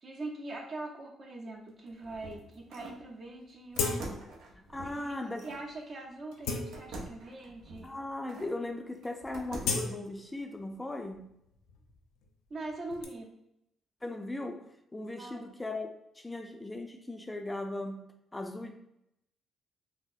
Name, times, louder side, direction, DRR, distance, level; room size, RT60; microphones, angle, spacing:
voice 1, 0.0-4.2 4.8-5.1 5.4-7.9 12.5-13.3 15.2-15.5, right 2 dB, 55° right, -1 dB, 0.8 m, -42 dB
sound 1, 1.7-3.0 3.8-5.7 6.7-8.6 9.0-9.9, right 2 dB, 85° right, 0.6 m, -46 dB
sound 2, 2.7-2.8 3.0-3.1 3.7-4.4 4.8-5.0 5.6-5.7 6.2-7.3 8.0-8.1 8.4-8.7 9.0-10.8 11.1-13.0, left 4 dB, 85° left, 0.4 m, -37 dB
voice 2, 4.7-5.5 7.8-11.3 14.0-14.6 14.9-18.8, left 2 dB, 20° left, 4 dB, 0.4 m, -38 dB
3.7 x 2.0 x 2.6 m, 0.80 s
supercardioid pair, 60°, 0 cm